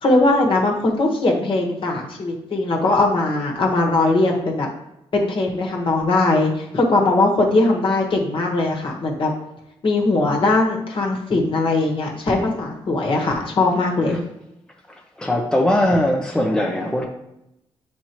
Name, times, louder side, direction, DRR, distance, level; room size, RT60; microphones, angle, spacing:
voice 1, 0.0-4.7 5.1-9.3 9.8-14.2, left 2 dB, 55° left, 0 dB, 1.4 m, -20 dB
voice 2, 15.2-17.1, left 1 dB, 5° left, 0 dB, 0.7 m, -20 dB
7.7 x 4.2 x 3.0 m, 0.85 s
cardioid pair, 105°, 11 cm